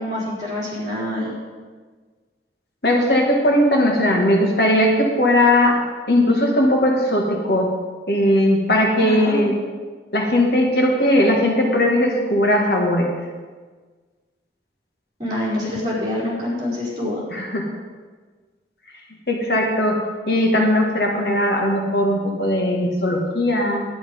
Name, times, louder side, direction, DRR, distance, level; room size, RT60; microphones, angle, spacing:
voice 1, 0.0-1.3 9.0-9.5 15.2-17.2, left 1 dB, 25° right, -7 dB, 4.3 m, -26 dB
voice 2, 2.8-5.8 6.1-7.7 8.1-9.5 10.1-13.1 17.3-17.6 19.3-20.0 20.3-23.8, left 1 dB, 60° left, 1 dB, 1.6 m, -18 dB
10.5 x 10.0 x 5.2 m, 1.4 s
head